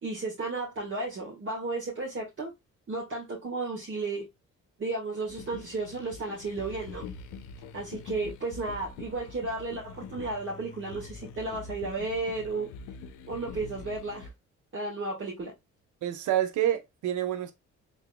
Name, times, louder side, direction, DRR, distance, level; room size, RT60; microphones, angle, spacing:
voice 1, 0.0-2.5 2.9-4.3 4.8-7.0 7.7-12.7 13.3-14.3 14.7-15.5, right 3 dB, 40° right, 1.7 m, -33 dB
sound 1, 5.3-14.3, left 5 dB, 90° left, 0.7 m, -44 dB
voice 2, 16.0-17.5, right 12 dB, 75° right, 0.8 m, -28 dB
3.9 x 3.5 x 2.2 m
cardioid pair, 90°, 30 cm